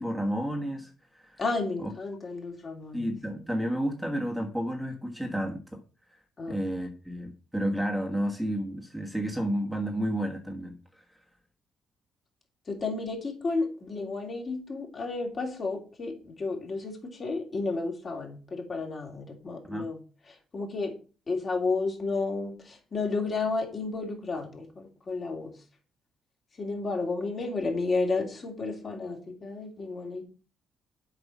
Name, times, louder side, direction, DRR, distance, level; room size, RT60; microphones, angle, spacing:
voice 1, 0.0-1.4 1.8-1.9 2.9-5.8 6.5-11.0 19.7-19.9, equal, ahead, 1 dB, 1.5 m, -31 dB
voice 2, 1.4-3.4 6.4-6.6 12.7-20.0 20.3-20.9 21.3-25.5 26.6-30.2, left 3 dB, 40° left, 1 dB, 3.1 m, -32 dB
7.9 x 4.9 x 7.2 m, 0.36 s
cardioid pair, 90°, 0 cm